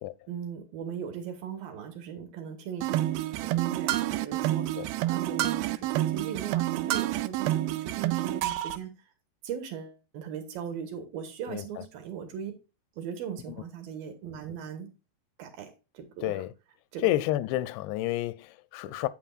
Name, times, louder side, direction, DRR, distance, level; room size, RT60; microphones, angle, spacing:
voice 1, 0.3-4.7 5.0-8.9 9.4-12.5 13.0-14.9 15.4-15.7 15.9-16.4 16.9-17.1, right 8 dB, 70° right, 2.7 m, -38 dB
sound 1, 2.8-8.8, right 15 dB, 85° right, 2.2 m, -28 dB
voice 2, 11.5-11.9 16.2-16.5 17.0-19.1, left 14 dB, 90° left, 2.7 m, -30 dB
9.0 x 7.6 x 2.4 m
omnidirectional pair, 4.8 m